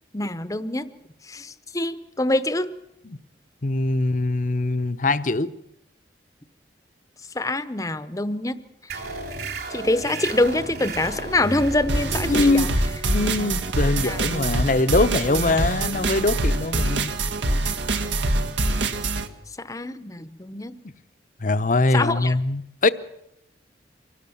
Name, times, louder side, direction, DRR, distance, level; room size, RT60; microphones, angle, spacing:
voice 1, 0.1-0.9 1.3-2.7 7.3-8.6 8.9-9.1 9.7-12.7 14.0-14.2 19.6-20.8 21.9-22.3, left 2 dB, 20° left, 14 dB, 0.8 m, -25 dB
voice 2, 3.6-5.5 12.3-12.7 13.0-17.1 21.4-22.9, left 2 dB, 45° left, 14 dB, 0.8 m, -22 dB
sound 1, 8.9-16.0, right 2 dB, 60° right, 3.6 m, -34 dB
sound 2, 11.9-19.3, right 2 dB, 80° right, 1.6 m, -24 dB
25.0 x 17.5 x 7.1 m, 0.80 s
head